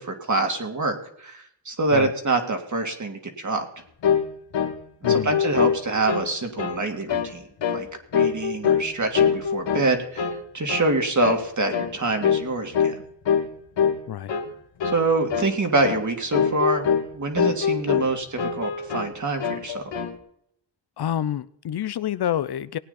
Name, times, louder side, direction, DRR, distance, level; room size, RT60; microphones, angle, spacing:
voice 1, 0.0-3.7 5.0-7.4 7.7-7.9 8.1-13.0 14.8-16.9 17.1-19.8, right 2 dB, 40° right, 3.0 m, -25 dB
sound 1, 4.0-4.3 4.5-4.8 5.0-6.3 6.6-6.8 7.1-7.3 7.6-7.9 8.1-8.9 9.1-9.9 10.2-10.4 10.7-10.9 11.2-11.4 11.7-11.9 12.2-12.5 12.7-13.0 13.3-13.5 13.8-14.0 14.3-14.5 14.8-15.1 15.3-15.5 15.8-16.0 16.3-17.1 17.4-18.1 18.4-19.1 19.4-20.1, left 7 dB, 80° left, 1.9 m, -23 dB
voice 2, 5.0-5.3 14.1-14.3 21.0-22.8, left 10 dB, 60° left, 0.7 m, -28 dB
19.5 x 9.2 x 4.2 m
cardioid pair, 75°, 43 cm